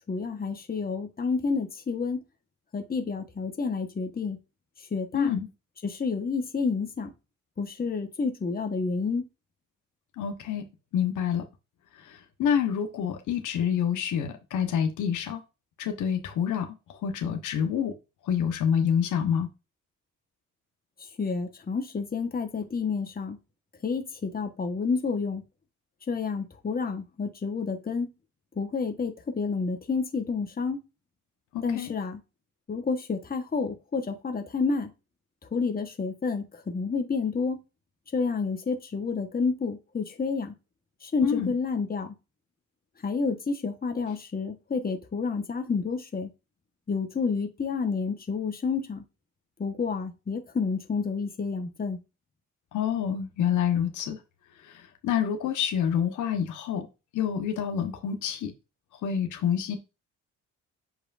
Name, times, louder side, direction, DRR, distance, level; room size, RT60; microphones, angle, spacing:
voice 1, 0.1-2.2 2.7-4.4 4.9-5.4 5.8-7.1 7.6-9.3 21.0-23.4 23.8-25.4 26.1-28.1 28.5-30.8 31.6-32.2 32.7-34.9 35.5-37.6 38.1-40.5 41.0-42.2 43.0-46.3 46.9-49.0 49.6-52.0, left 4 dB, 30° left, 1.4 m, -29 dB
voice 2, 5.1-5.5 10.2-10.7 10.9-11.4 12.0-15.4 15.8-17.9 18.2-19.5 31.5-31.9 41.2-41.5 52.7-54.2 54.6-56.9 57.1-58.5 59.0-59.8, left 8 dB, 80° left, 1.3 m, -27 dB
8.0 x 4.8 x 2.6 m
cardioid pair, 90°, 30 cm